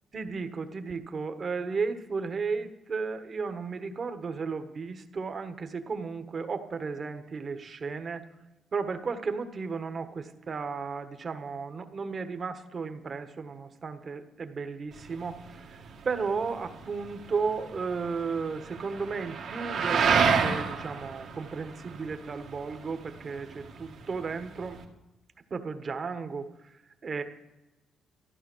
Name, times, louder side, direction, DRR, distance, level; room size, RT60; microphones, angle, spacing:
voice 1, 0.1-8.3 8.7-24.8 25.5-27.2, right 5 dB, 45° right, 8 dB, 1.5 m, -34 dB
sound 1, 14.9-24.8, right 6 dB, 75° right, 2.2 m, -31 dB
14.0 x 11.0 x 6.3 m, 0.99 s
cardioid pair, 70°, 0 cm